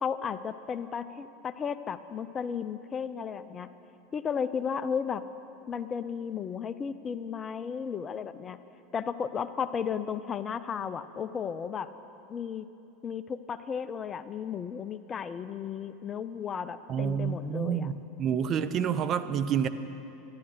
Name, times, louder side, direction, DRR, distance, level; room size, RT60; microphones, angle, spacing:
voice 1, 0.0-3.7 4.1-5.2 5.7-8.6 8.9-11.9 12.3-12.7 13.0-17.9, left 7 dB, 30° left, 13 dB, 0.5 m, -34 dB
voice 2, 16.9-19.7, right 8 dB, 40° right, 11 dB, 0.6 m, -28 dB
11.5 x 11.0 x 6.3 m, 2.8 s
figure-of-eight pair, 80°, 0 cm